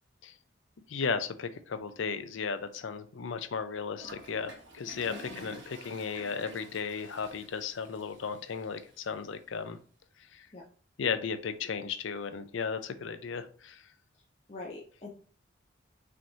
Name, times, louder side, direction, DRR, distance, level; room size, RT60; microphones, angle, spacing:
voice 1, 0.9-9.8 10.3-10.5 11.0-13.8, left 5 dB, 80° left, 10 dB, 0.5 m, -35 dB
Toilet flush, 4.0-9.0, right 2 dB, 75° right, 1.3 m, -50 dB
voice 2, 5.1-5.6 10.5-10.6 14.5-15.1, left 2 dB, 35° left, -4 dB, 0.6 m, -44 dB
5.0 x 3.5 x 2.8 m, 0.42 s
head